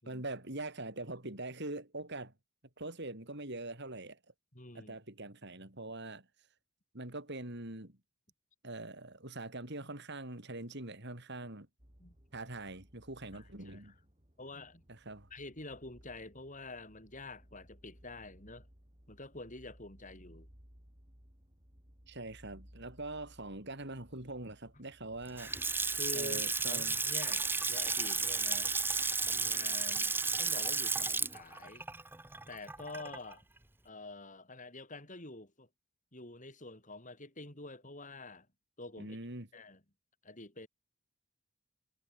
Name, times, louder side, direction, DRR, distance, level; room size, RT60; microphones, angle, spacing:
voice 1, 0.1-2.3 2.8-4.2 4.7-6.3 6.9-8.0 8.6-11.7 12.3-13.9 14.9-15.3 22.1-25.5 26.1-27.0 39.0-39.5, right 2 dB, 50° right, 4.7 m, -43 dB
voice 2, 4.5-5.0 12.0-12.2 13.3-13.9 14.4-14.8 15.3-18.7 19.1-20.5 25.9-28.7 29.2-31.8 32.5-33.4 33.8-35.7 36.1-38.5 38.8-39.2 39.5-39.8 40.2-40.7, left 2 dB, 35° left, 6.4 m, -47 dB
sound 1, 11.8-29.6, equal, 30° right, 5.7 m, -61 dB
Water tap faucet / Sink (filling or washing) / Splash splatter, 25.2-33.3, right 4 dB, 10° right, 1.3 m, -33 dB
head